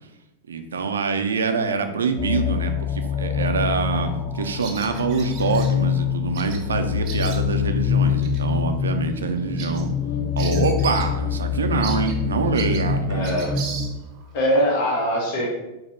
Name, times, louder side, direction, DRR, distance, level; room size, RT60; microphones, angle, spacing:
voice 1, 0.5-9.9 10.4-13.3, right 5 dB, 70° right, 7 dB, 0.4 m, -25 dB
sound 1, 2.2-13.9, left 7 dB, 25° left, 0.6 m, -25 dB
Bird vocalization bird call bird song, 4.6-5.7 6.3-6.6 6.9-7.7 8.2-8.4 8.8-8.9 9.3-11.2 11.4-11.5 11.8-14.3, right 5 dB, 40° right, 0.7 m, -36 dB
voice 2, 13.1-13.5 14.3-15.5, equal, 50° left, -2 dB, 1.2 m, -22 dB
5.0 x 2.1 x 4.2 m, 0.99 s
figure-of-eight pair, 90°, 0 cm